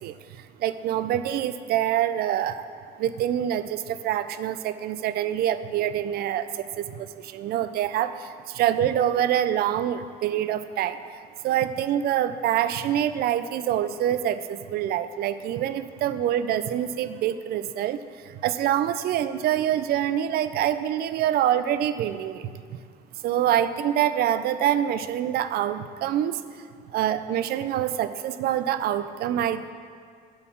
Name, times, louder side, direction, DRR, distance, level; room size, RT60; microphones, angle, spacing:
voice 1, 0.0-2.7 3.0-22.5 23.2-26.6 26.9-29.7, right 11 dB, 65° right, 12 dB, 0.5 m, -26 dB
11.5 x 4.0 x 6.0 m, 2.1 s
cardioid pair, 110°, 17 cm